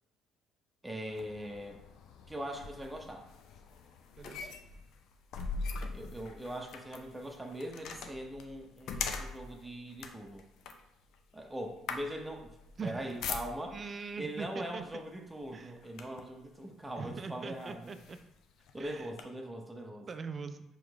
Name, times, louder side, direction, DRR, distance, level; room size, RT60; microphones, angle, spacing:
voice 1, 0.8-1.8 2.3-3.3 5.9-10.5 11.3-12.6 12.8-13.8 14.2-18.0 18.7-20.1, right 1 dB, 15° right, 2 dB, 0.8 m, -41 dB
sound 1, 1.1-13.9 14.8-15.0 15.4-16.4 17.0-17.1 17.6-19.2, left 4 dB, 65° left, 0.5 m, -42 dB
voice 2, 4.2-4.5 12.8-13.0 13.7-14.8 15.5-15.8 17.0-18.2 18.8-19.1 20.1-20.6, right 5 dB, 40° right, 10 dB, 0.4 m, -41 dB
4.8 x 3.1 x 3.5 m, 0.87 s
hypercardioid pair, 60°, 0 cm